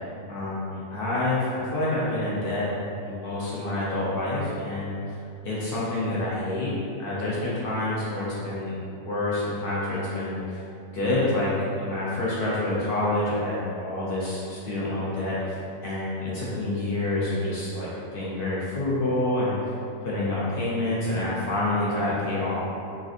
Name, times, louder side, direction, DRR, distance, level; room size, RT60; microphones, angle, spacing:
voice 1, 0.3-2.7 3.0-5.2 5.4-8.7 9.1-10.6 10.9-19.7 20.0-22.6, left 2 dB, 60° left, -8 dB, 0.6 m, -27 dB
3.1 x 2.5 x 2.5 m, 2.6 s
omnidirectional pair, 1.6 m